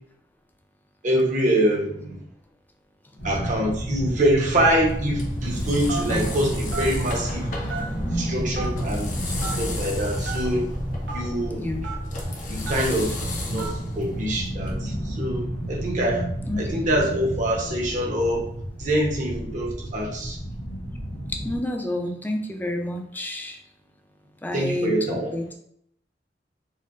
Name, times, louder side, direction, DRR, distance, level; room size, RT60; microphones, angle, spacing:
voice 1, 1.0-2.2 3.2-7.5 8.1-9.2 9.4-10.7 11.1-11.8 12.5-13.2 13.5-16.2 16.6-18.4 18.8-20.4 24.5-25.3, right 1 dB, 45° right, -2 dB, 0.8 m, -25 dB
sound 1, 3.2-21.6, equal, 80° left, 0.9 m, -31 dB
sound 2, 4.4-14.7, left 1 dB, 50° left, 0.7 m, -34 dB
Telephone, 5.9-6.2 6.7-6.9 7.7-8.1 8.5-8.7 9.4-9.6 10.2-10.4 11.1-11.2 11.8-11.9 12.6-12.9 13.6-13.8, right 4 dB, 90° right, 0.9 m, -32 dB
voice 2, 16.5-16.8 21.4-23.6 24.4-25.5, left 1 dB, 10° left, 3 dB, 0.4 m, -29 dB
4.3 x 2.1 x 2.5 m, 0.70 s
head